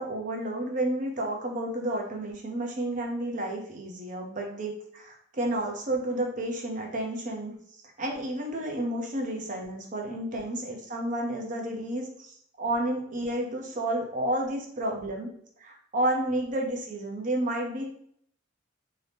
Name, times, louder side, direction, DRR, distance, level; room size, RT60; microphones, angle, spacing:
voice 1, 0.0-7.6 8.0-15.3 15.6-17.9, right 1 dB, 40° right, 1 dB, 0.6 m, -31 dB
2.8 x 2.7 x 3.4 m, 0.65 s
head